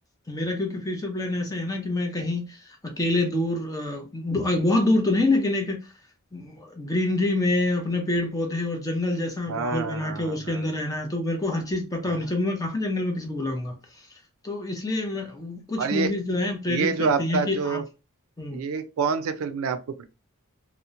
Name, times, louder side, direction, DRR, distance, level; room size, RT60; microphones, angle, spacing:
voice 1, 0.3-5.8 6.3-13.8 14.4-17.8 18.4-18.6, left 2 dB, 15° left, 0.5 m, -26 dB
voice 2, 9.5-10.7 12.0-12.2 15.8-16.1 16.7-17.8 18.5-20.0, right 5 dB, 70° right, 0.4 m, -27 dB
2.8 x 2.0 x 2.4 m
head